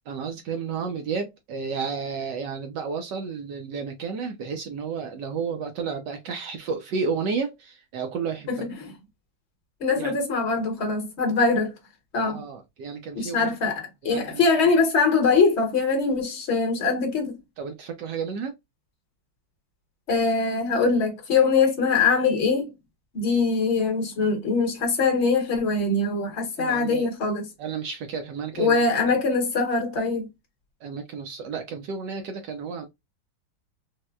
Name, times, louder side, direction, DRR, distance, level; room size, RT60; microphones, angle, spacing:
voice 1, 0.1-8.7 10.0-10.2 12.2-13.5 14.0-14.4 17.6-18.5 26.6-27.1 27.6-28.8 30.8-32.9, right 5 dB, 75° right, 1.1 m, -32 dB
voice 2, 8.5-8.9 9.8-11.7 12.1-12.4 13.1-17.4 20.1-22.7 23.1-27.5 28.6-30.3, left 4 dB, 40° left, 1.0 m, -23 dB
4.1 x 2.1 x 2.2 m
omnidirectional pair, 2.2 m